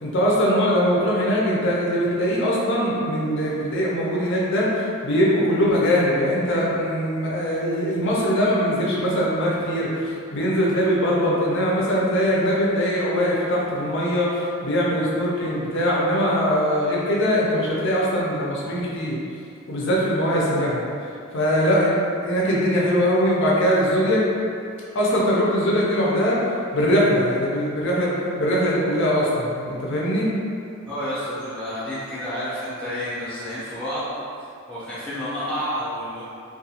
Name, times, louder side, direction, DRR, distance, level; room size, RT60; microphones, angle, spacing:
voice 1, 0.0-19.2 19.7-20.8 21.3-21.9 22.2-24.2 24.9-26.4 26.7-28.1 28.4-30.3, equal, 60° left, -5 dB, 0.5 m, -21 dB
voice 2, 30.9-34.1 34.7-36.2, equal, 5° left, -12 dB, 0.7 m, -30 dB
2.4 x 2.2 x 2.8 m, 2.5 s
head